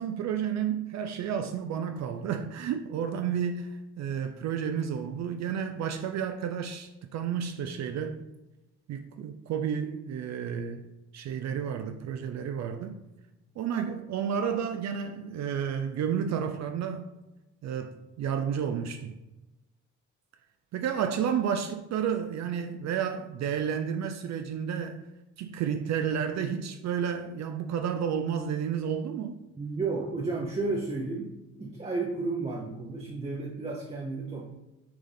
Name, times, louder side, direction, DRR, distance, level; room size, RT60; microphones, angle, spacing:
voice 1, 0.0-8.2 8.9-10.9 11.1-13.0 13.6-17.1 17.6-19.2 20.7-25.0 25.4-29.4, right 8 dB, 65° right, 6 dB, 0.4 m, -31 dB
voice 2, 29.5-31.3 31.6-34.5, right 3 dB, 20° right, -2 dB, 0.7 m, -32 dB
5.9 x 2.5 x 3.3 m, 1.0 s
cardioid pair, 90°, 30 cm